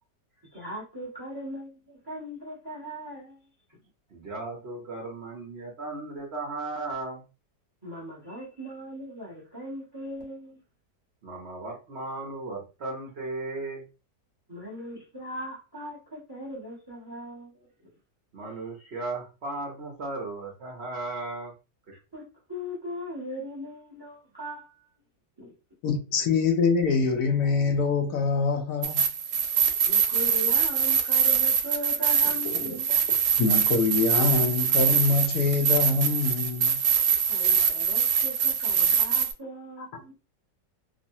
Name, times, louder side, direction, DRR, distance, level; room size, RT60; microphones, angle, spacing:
voice 1, 0.5-3.4 7.8-10.6 14.5-17.7 22.1-22.2 22.5-24.7 25.4-25.5 29.9-33.0 37.3-40.1, equal, 20° right, 0.7 m, -39 dB
voice 2, 4.1-7.2 11.2-13.8 18.3-21.5 21.9-22.0, right 2 dB, 55° right, 0.8 m, -36 dB
voice 3, 25.8-29.1 32.5-33.0 33.4-36.8 39.9-40.0, left 4 dB, 75° left, 1.1 m, -25 dB
sound 1, 28.8-39.3, right 7 dB, 75° right, 1.1 m, -24 dB
3.1 x 2.0 x 2.6 m
omnidirectional pair, 1.8 m